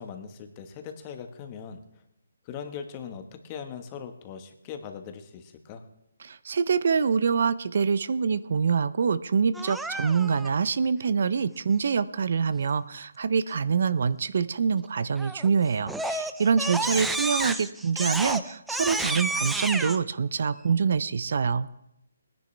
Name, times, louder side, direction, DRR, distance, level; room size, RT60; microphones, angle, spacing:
voice 1, 0.0-1.8 2.4-5.8, left 7 dB, 25° left, 6 dB, 1.4 m, -40 dB
voice 2, 6.2-21.7, right 6 dB, 60° right, 16 dB, 0.6 m, -25 dB
Crying sobbing, 9.5-10.5 15.2-15.5 15.9-20.0, right 2 dB, 5° right, 0.5 m, -30 dB
18.5 x 10.5 x 3.4 m, 0.83 s
hypercardioid pair, 160°, 0 cm